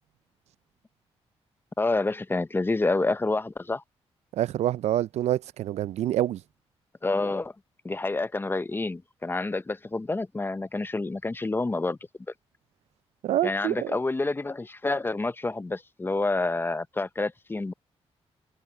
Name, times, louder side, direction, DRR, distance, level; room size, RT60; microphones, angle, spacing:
voice 1, 1.8-3.8 7.0-7.5 7.8-12.0 13.4-17.7, left 2 dB, 20° left, 0.7 m, -28 dB
voice 2, 4.3-6.4 13.2-13.9, right 12 dB, 85° right, 0.4 m, -26 dB
cardioid pair, 85°, 11 cm